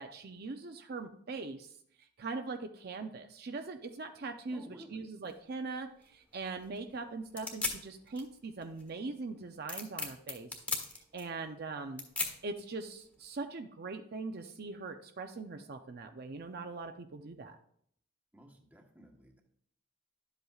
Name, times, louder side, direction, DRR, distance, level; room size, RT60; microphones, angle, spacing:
voice 1, 0.0-1.7 2.0-4.6 4.9-10.5 10.9-17.6, right 3 dB, 50° right, 6 dB, 0.5 m, -41 dB
voice 2, 4.5-5.1 18.3-19.4, right 1 dB, 10° right, 2 dB, 1.1 m, -54 dB
sound 1, 5.2-13.3, left 3 dB, 5° left, 1.5 m, -41 dB
11.5 x 8.0 x 2.4 m, 0.66 s
head